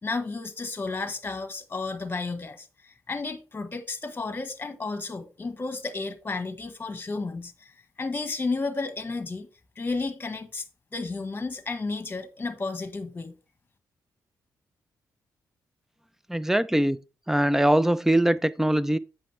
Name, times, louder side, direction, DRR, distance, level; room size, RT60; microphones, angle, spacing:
voice 1, 0.0-7.7 8.0-9.5 9.7-10.7 10.9-13.3, left 3 dB, 30° left, 1.4 m, -32 dB
voice 2, 16.3-17.0 17.3-19.0, right 1 dB, 5° right, 0.6 m, -22 dB
8.4 x 6.4 x 3.3 m
cardioid pair, 70°, 7 cm